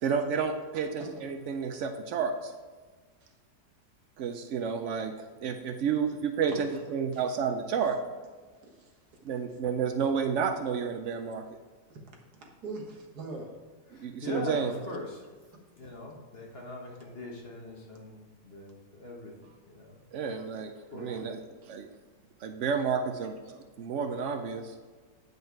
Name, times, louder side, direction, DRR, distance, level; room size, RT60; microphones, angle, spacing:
voice 1, 0.0-2.5 4.2-8.0 9.2-11.4 14.0-14.7 20.1-21.9 22.4-24.7, right 6 dB, 85° right, 6 dB, 0.6 m, -31 dB
voice 2, 6.5-6.8 7.1-7.2 8.6-9.3 11.9-12.0 12.3-13.6 14.6-14.7, right 2 dB, 60° right, 1 dB, 1.8 m, -43 dB
voice 3, 13.9-15.2 15.8-19.3 19.7-20.0 20.9-21.2, left 2 dB, 40° left, -1 dB, 1.3 m, -41 dB
9.2 x 5.5 x 4.5 m, 1.5 s
omnidirectional pair, 1.9 m